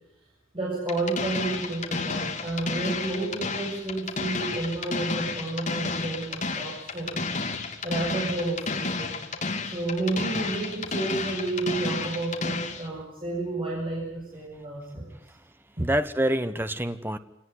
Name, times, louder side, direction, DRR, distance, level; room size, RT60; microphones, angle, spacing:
voice 1, 0.5-7.3 7.8-9.2 9.7-15.1 15.8-15.9, right 2 dB, 25° right, -4 dB, 7.4 m, -31 dB
sound 1, 0.9-12.9, left 4 dB, 40° left, 2.9 m, -31 dB
voice 2, 15.8-17.2, right 1 dB, 10° right, 10 dB, 1.2 m, -27 dB
27.5 x 19.0 x 9.7 m, 0.85 s
head